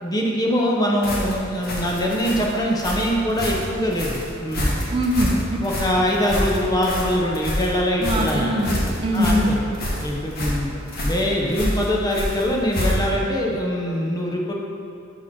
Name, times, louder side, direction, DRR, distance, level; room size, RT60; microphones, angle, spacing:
voice 1, 0.0-4.7 5.6-8.5 9.1-9.6 10.0-10.7 11.0-14.5, equal, 20° left, -1 dB, 0.6 m, -23 dB
sound 1, 1.0-13.3, left 1 dB, 45° left, 1.3 m, -27 dB
voice 2, 4.9-5.3 8.0-9.6, equal, 25° right, 0 dB, 0.6 m, -22 dB
6.0 x 4.6 x 6.0 m, 2.7 s
head